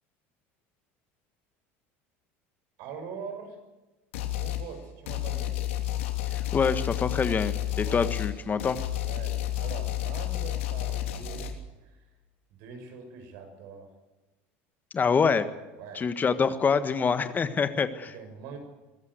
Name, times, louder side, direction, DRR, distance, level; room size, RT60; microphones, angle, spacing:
voice 1, 2.8-3.6 4.4-5.6 7.8-8.3 9.0-12.1 12.5-13.9 15.8-16.1 18.0-18.6, right 5 dB, 70° right, 5 dB, 6.4 m, -43 dB
sound 1, 4.1-4.7 5.1-11.5, left 14 dB, 85° left, 3.1 m, -31 dB
voice 2, 6.3-8.8 14.9-15.5 15.9-18.1, left 5 dB, 25° left, 11 dB, 1.5 m, -26 dB
23.0 x 14.5 x 8.1 m, 1.1 s
supercardioid pair, 105°, 7 cm